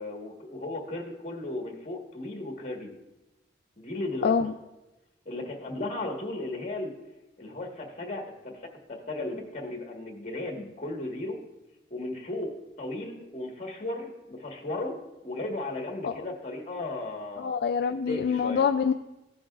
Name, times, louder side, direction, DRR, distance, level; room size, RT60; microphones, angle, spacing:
voice 1, 0.0-2.9 3.8-4.4 5.2-6.9 7.4-8.6 8.9-11.4 11.9-17.5 18.1-18.6, left 2 dB, 40° left, 2 dB, 1.5 m, -35 dB
voice 2, 4.2-4.5 16.0-16.2 17.4-18.9, left 6 dB, 60° left, 7 dB, 0.3 m, -25 dB
15.0 x 7.8 x 2.4 m, 1.0 s
head